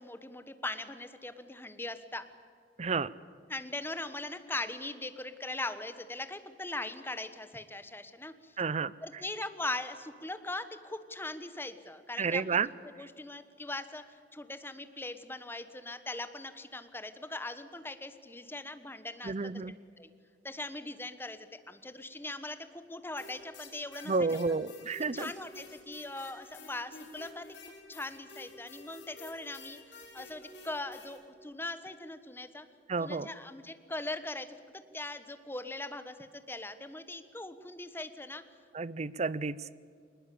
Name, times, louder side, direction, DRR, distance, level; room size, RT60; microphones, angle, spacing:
voice 1, 0.0-2.2 3.5-8.6 9.0-12.7 13.0-19.3 20.0-20.1 20.4-24.3 25.1-27.5 27.9-32.7 33.0-34.5 34.7-38.4, left 2 dB, 15° left, 10 dB, 1.2 m, -40 dB
voice 2, 2.8-3.1 8.6-8.9 12.2-12.7 19.2-19.7 24.1-25.3 32.9-33.3 38.7-39.6, right 4 dB, 40° right, 19 dB, 0.6 m, -31 dB
sound 1, 23.2-31.2, left 3 dB, 80° left, 5.3 m, -51 dB
22.0 x 20.0 x 8.5 m, 2.3 s
head